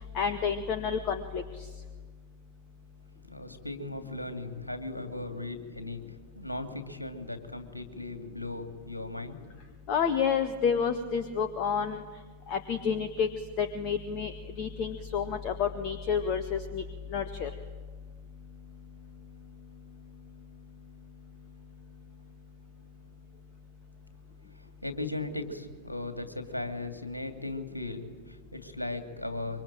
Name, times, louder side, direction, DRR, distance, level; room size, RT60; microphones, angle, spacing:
voice 1, 0.1-1.4 9.9-12.0 12.5-13.3 13.6-16.8 17.1-17.5, left 6 dB, 40° left, 8 dB, 1.8 m, -29 dB
voice 2, 3.2-6.0 6.3-9.4 24.5-29.6, left 2 dB, 85° left, 7 dB, 2.7 m, -37 dB
26.0 x 24.0 x 9.1 m, 1.4 s
figure-of-eight pair, 90°, 0 cm